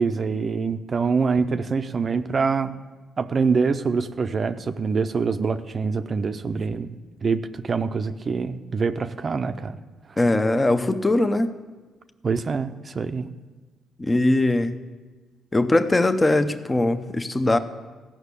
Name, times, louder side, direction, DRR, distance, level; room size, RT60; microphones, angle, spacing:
voice 1, 0.0-2.8 3.2-9.8 12.2-13.3, right 5 dB, 40° right, 10 dB, 0.5 m, -25 dB
voice 2, 10.2-11.5 14.0-14.8 15.5-17.6, left 2 dB, 20° left, 10 dB, 0.7 m, -21 dB
15.0 x 6.0 x 8.2 m, 1.3 s
cardioid pair, 90°, 0 cm